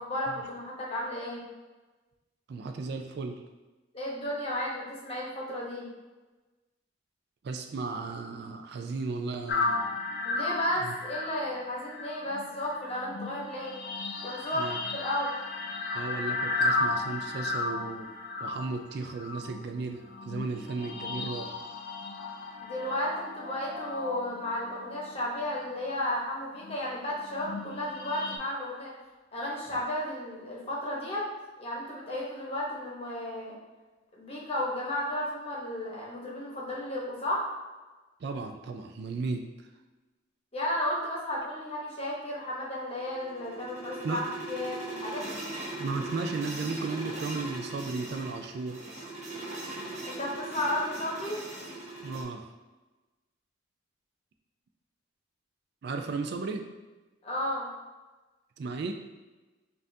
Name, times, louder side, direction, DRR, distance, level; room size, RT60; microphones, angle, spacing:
voice 1, 0.0-1.4 3.9-5.9 10.2-13.8 14.2-14.7 14.9-15.3 22.6-28.9 29.3-31.3 31.6-33.5 34.1-37.5 40.5-45.5 50.0-51.4 57.2-57.7, left 1 dB, 30° left, -4 dB, 1.0 m, -33 dB
voice 2, 2.5-3.4 7.4-9.9 10.8-10.9 14.5-14.8 15.9-18.1 18.4-21.5 38.2-39.5 44.0-44.2 45.8-48.8 52.0-52.5 55.8-56.7 58.6-58.9, right 4 dB, 55° right, 5 dB, 0.3 m, -35 dB
sound 1, 9.5-26.0 26.6-28.4, left 3 dB, 55° left, 0.4 m, -35 dB
sound 2, 42.8-52.2, right 2 dB, 35° right, 0.7 m, -39 dB
5.3 x 2.5 x 2.7 m, 1.2 s
head